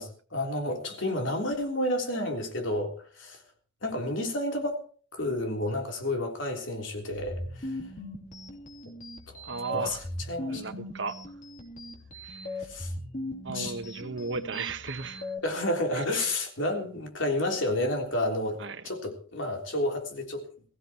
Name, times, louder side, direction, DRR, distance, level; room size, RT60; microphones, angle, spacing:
voice 1, 0.0-3.4 3.8-4.8 5.1-7.8 9.3-9.4 9.7-10.0 10.3-10.6 12.6-12.9 13.5-13.8 15.4-18.6 18.8-20.5, left 1 dB, 70° left, 3.5 m, -30 dB
bfc sample scifi, 7.1-15.4, left 1 dB, 45° left, 3.1 m, -39 dB
voice 2, 9.4-10.0 10.5-11.2 12.2-12.6 13.4-15.3 15.9-16.4 18.6-18.8, right 4 dB, 70° right, 1.2 m, -36 dB
22.0 x 15.5 x 3.0 m
head